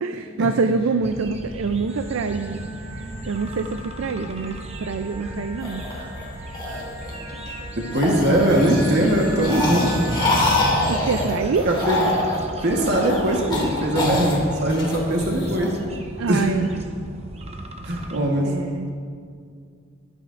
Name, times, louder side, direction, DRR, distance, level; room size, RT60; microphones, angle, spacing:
voice 1, 0.0-2.6 3.2-5.8 10.9-11.7 16.2-16.8 18.4-18.9, right 4 dB, 85° right, 8 dB, 0.4 m, -25 dB
sound 1, 1.0-18.2, right 1 dB, 30° right, 0.8 m, -37 dB
sound 2, 1.9-10.7, right 1 dB, 15° right, 2.0 m, -38 dB
sound 3, 5.6-7.5 7.9-15.7, left 1 dB, 25° left, 2.4 m, -25 dB
voice 2, 7.8-9.9 11.6-12.0 12.6-15.8 16.3-16.5 17.8-18.5, right 1 dB, 55° right, 0 dB, 1.3 m, -21 dB
21.5 x 9.2 x 2.5 m, 2.2 s
head